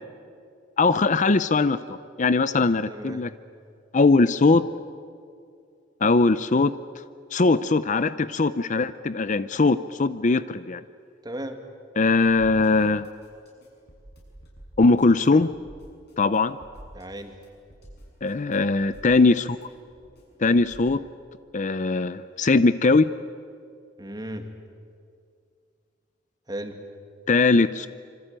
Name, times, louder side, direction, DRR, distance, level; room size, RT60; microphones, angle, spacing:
voice 1, 0.8-3.3 3.9-4.6 6.0-6.7 7.3-10.8 12.0-13.1 14.8-15.5 16.2-16.6 18.2-19.6 20.4-21.0 21.5-23.0 27.3-27.9, left 3 dB, 40° left, 14 dB, 0.6 m, -20 dB
voice 2, 2.5-3.2 11.2-11.6 16.9-17.4 24.0-24.5 26.5-26.8, right 1 dB, 20° right, 6 dB, 2.3 m, -36 dB
sound 1, 12.2-21.0, equal, 60° left, 7.4 m, -49 dB
26.0 x 25.5 x 9.0 m, 2.3 s
head